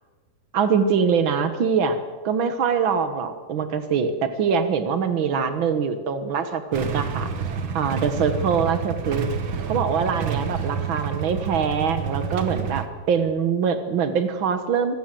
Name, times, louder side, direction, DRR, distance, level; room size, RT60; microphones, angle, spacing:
voice 1, 0.5-7.3 7.7-9.3 9.7-15.0, right 6 dB, 90° right, 9 dB, 1.1 m, -23 dB
Motorcycle / Engine starting / Idling, 6.7-12.9, right 6 dB, 55° right, 1.4 m, -29 dB
25.5 x 20.0 x 7.7 m, 1.5 s
omnidirectional pair, 4.3 m